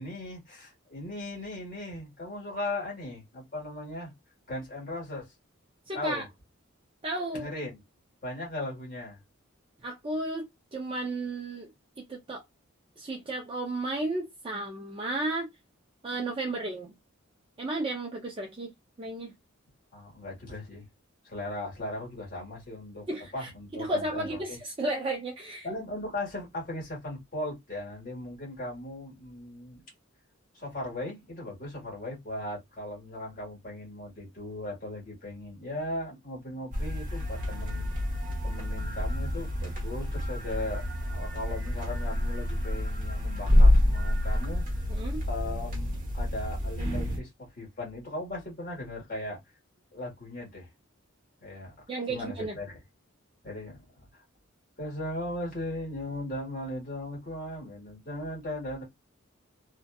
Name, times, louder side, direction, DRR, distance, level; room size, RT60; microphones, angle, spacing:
voice 1, 0.0-4.1 4.5-5.3 5.9-6.3 7.3-7.8 8.2-9.2 19.9-20.9 21.2-23.1 23.3-24.6 25.6-29.8 30.5-44.6 45.3-49.4 49.9-50.7 51.4-51.7 52.1-52.8 53.4-53.8 54.1-54.2 54.8-58.8, left 1 dB, 45° left, 1.4 m, -38 dB
voice 2, 5.9-6.2 7.0-7.5 9.8-10.4 10.7-11.7 12.1-12.4 13.0-15.5 16.0-16.9 17.6-18.7 19.0-19.3 23.1-25.7 44.9-45.2 51.9-52.6, right 2 dB, 25° right, 0.4 m, -33 dB
sound 1, 36.7-47.2, left 1 dB, 40° right, 0.9 m, -27 dB
2.6 x 2.2 x 2.2 m
head